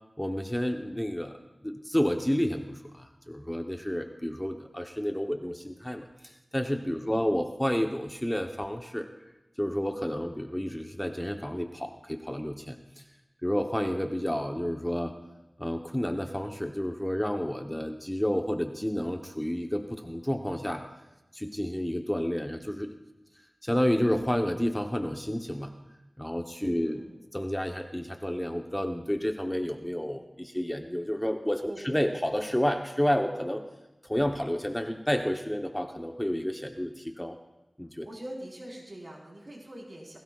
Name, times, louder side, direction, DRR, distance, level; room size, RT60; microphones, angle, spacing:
voice 1, 0.2-9.1 9.6-13.0 13.4-15.1 15.6-20.8 21.3-22.9 23.6-25.8 26.2-27.0 27.3-33.6 34.0-37.4 37.8-38.1, equal, 10° left, 4 dB, 0.9 m, -30 dB
voice 2, 26.6-27.2 31.7-31.8 38.0-40.2, right 1 dB, 55° right, -4 dB, 4.4 m, -43 dB
20.5 x 16.5 x 2.4 m, 1.0 s
wide cardioid pair, 60°, 0 cm